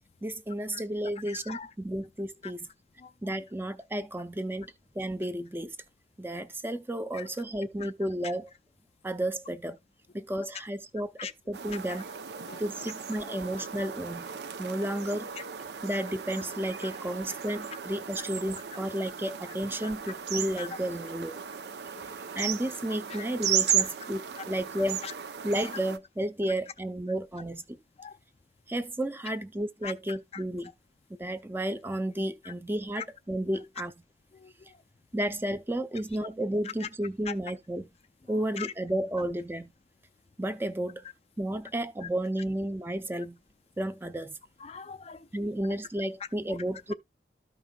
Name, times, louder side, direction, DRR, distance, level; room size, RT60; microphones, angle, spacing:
voice 1, 0.2-2.7 3.2-4.7 4.9-5.8 6.2-8.5 9.0-9.8 10.1-12.0 12.6-14.3 14.6-15.3 15.8-21.4 22.3-25.0 25.4-27.8 28.7-30.7 31.2-33.9 35.1-37.9 38.3-39.7 40.4-41.0 41.4-43.4 43.8-44.4 45.3-46.9, right 1 dB, 15° right, 0.6 m, -32 dB
voice 2, 1.3-1.7 3.0-3.1 7.1-7.3 7.8-7.9 11.2-11.3 11.7-11.8 12.5-12.6 13.3-13.4 16.8-16.9 19.8-19.9 20.6-20.7 21.9-22.0 23.1-23.2 23.8-23.9 24.4-24.5 25.0-25.5 28.0-28.2 29.8-30.4 32.4-32.5 33.0-33.1 34.3-34.8 36.8-36.9 37.3-37.4 38.3-38.7 44.6-45.3 46.5-46.6, left 7 dB, 35° left, 0.4 m, -41 dB
sound 1, 11.5-26.0, right 8 dB, 70° right, 0.6 m, -35 dB
13.5 x 5.4 x 2.3 m
head